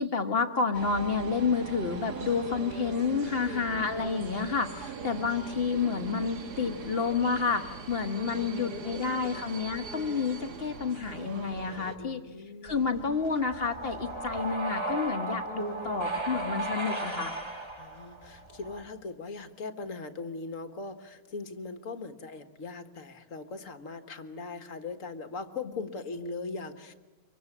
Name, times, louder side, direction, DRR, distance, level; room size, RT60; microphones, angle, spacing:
voice 1, 0.0-12.2 12.6-17.3, left 5 dB, 40° left, 7 dB, 1.6 m, -30 dB
sound 1, 0.7-12.0, right 5 dB, 80° right, 2.0 m, -41 dB
voice 2, 3.4-3.8 8.3-9.4 12.0-12.9 15.5-16.0 17.8-26.9, left 4 dB, 55° left, 9 dB, 1.7 m, -40 dB
sound 2, 12.7-18.8, right 2 dB, 15° right, 2.3 m, -36 dB
25.5 x 23.0 x 7.3 m, 1.2 s
omnidirectional pair, 1.7 m